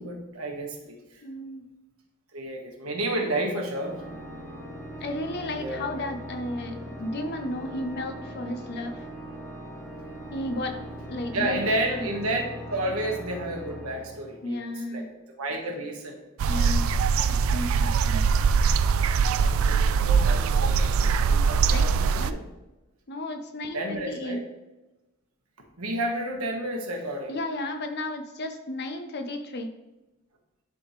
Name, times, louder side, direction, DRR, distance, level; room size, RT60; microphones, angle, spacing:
voice 1, 0.0-1.2 2.3-4.0 5.6-6.1 11.3-12.4 12.7-15.1 15.4-16.2 19.3-22.5 23.7-24.4 25.8-27.4, right 1 dB, 90° right, 1 dB, 1.4 m, -31 dB
voice 2, 1.2-1.6 5.0-9.1 10.3-10.8 11.1-11.6 11.9-12.0 12.8-12.9 14.4-15.0 16.4-16.8 17.3-18.2 21.7-22.4 23.1-24.4 27.3-29.7, left 1 dB, 50° left, 6 dB, 0.7 m, -33 dB
Organ, 3.7-14.7, equal, 10° left, 2.2 m, -40 dB
sound 1, 16.4-22.3, right 5 dB, 65° right, 0.3 m, -22 dB
10.5 x 3.7 x 3.2 m, 1.0 s
head